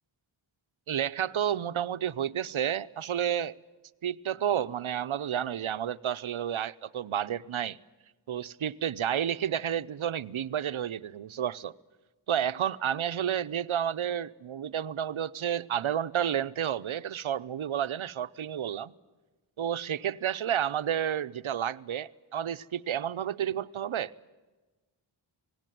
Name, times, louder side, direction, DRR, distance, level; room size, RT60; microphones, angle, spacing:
voice 1, 0.9-3.5 4.0-7.8 8.3-11.7 12.3-18.9 19.6-24.1, right 9 dB, 90° right, 0.8 m, -31 dB
26.5 x 19.0 x 9.2 m
wide cardioid pair, 80°, 47 cm